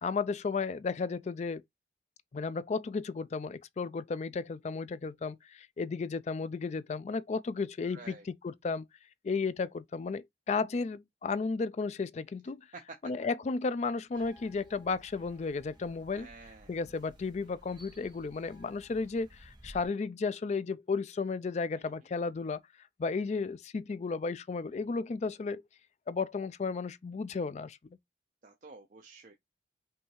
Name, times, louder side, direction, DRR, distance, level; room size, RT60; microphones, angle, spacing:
voice 1, 0.0-1.6 2.3-8.9 9.2-12.7 13.0-16.3 16.7-22.6 23.0-25.6 26.1-27.8, left 4 dB, 40° left, 0.3 m, -34 dB
voice 2, 7.8-8.2 16.1-16.7 28.4-29.3, right 3 dB, 45° right, 0.6 m, -51 dB
sound 1, 14.1-19.9, equal, 25° right, 1.3 m, -56 dB
5.4 x 2.7 x 3.0 m
head